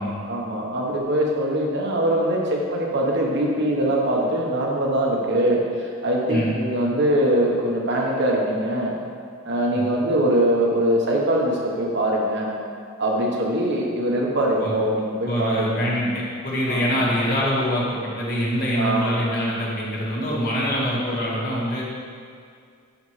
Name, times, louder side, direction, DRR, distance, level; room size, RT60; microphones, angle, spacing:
voice 1, 0.0-9.0 9.4-12.5 13.0-15.9 16.7-17.0 18.7-19.3, right 1 dB, 60° right, -2 dB, 1.2 m, -22 dB
voice 2, 15.2-21.8, equal, 50° left, -5 dB, 1.8 m, -24 dB
11.5 x 5.4 x 3.3 m, 2.2 s
head